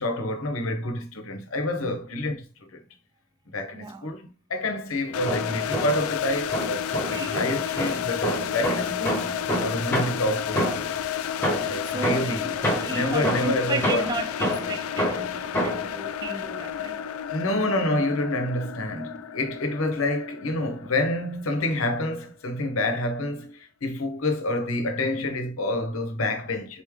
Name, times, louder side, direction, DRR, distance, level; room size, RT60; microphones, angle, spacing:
voice 1, 0.0-2.8 3.5-10.7 11.7-14.1 17.3-26.8, left 1 dB, 70° left, 0.9 m, -28 dB
voice 2, 3.7-4.1 7.1-8.0 11.9-17.0, right 3 dB, 20° right, 0.3 m, -34 dB
sound 1, 5.1-22.0, left 10 dB, 85° left, 0.4 m, -32 dB
sound 2, 5.1-6.1 6.5-11.0 11.4-16.0, equal, 10° left, 1.5 m, -28 dB
4.1 x 3.2 x 3.5 m
head